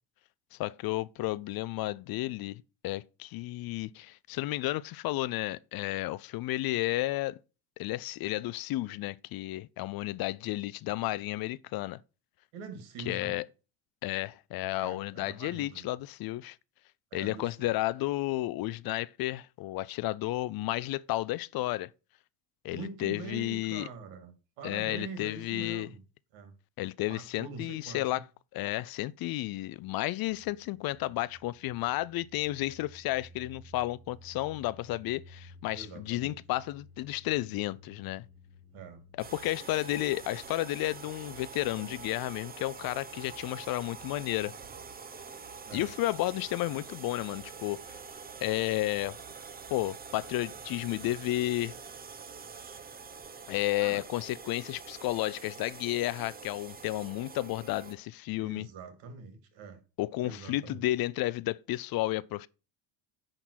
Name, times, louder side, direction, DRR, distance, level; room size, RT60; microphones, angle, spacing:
voice 1, 0.5-7.4 7.8-12.0 13.1-13.4 14.0-16.6 17.1-21.9 22.6-23.9 24.6-25.9 26.8-28.2 28.5-38.3 39.2-44.5 45.7-48.0 48.4-49.2 49.7-51.7 53.5-58.7 60.0-62.5, left 17 dB, 55° left, 0.5 m, -32 dB
voice 2, 12.5-13.3 14.7-15.9 17.1-17.7 22.7-26.0 26.3-26.5 27.1-28.2 35.7-36.4 38.7-39.0 45.6-45.9 53.8-54.0 58.4-59.8 60.2-60.8, right 5 dB, 75° right, 2.5 m, -44 dB
sound 1, 30.3-48.1, left 1 dB, 45° right, 4.3 m, -57 dB
sound 2, 39.2-58.0, right 5 dB, 20° right, 0.8 m, -46 dB
10.0 x 3.9 x 6.2 m
cardioid pair, 120°, 46 cm